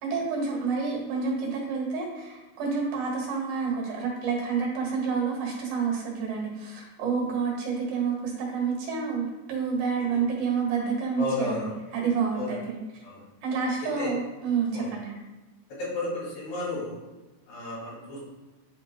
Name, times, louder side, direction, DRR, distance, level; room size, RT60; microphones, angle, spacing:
voice 1, 0.0-13.0 13.4-15.1, right 5 dB, 65° right, -3 dB, 3.1 m, -29 dB
voice 2, 11.2-11.7 12.3-12.5 13.0-13.2 14.0-14.1 14.7-14.9 15.8-17.0 17.5-18.2, left 2 dB, 85° left, -7 dB, 4.6 m, -32 dB
11.0 x 5.0 x 2.2 m, 1.1 s
omnidirectional pair, 4.6 m